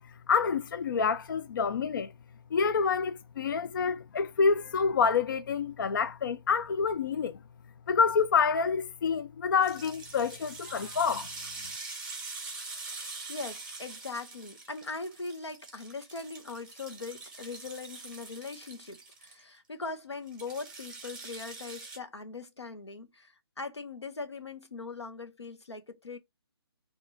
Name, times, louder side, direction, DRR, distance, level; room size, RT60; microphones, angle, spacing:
voice 1, 0.3-2.1 2.5-7.4 7.9-11.3, left 5 dB, 50° left, 0.4 m, -27 dB
sound 1, 9.6-19.4 20.3-22.0, right 3 dB, 5° right, 1.9 m, -44 dB
voice 2, 13.3-26.2, left 3 dB, 90° left, 1.3 m, -40 dB
4.0 x 2.9 x 3.9 m
figure-of-eight pair, 155°, 14 cm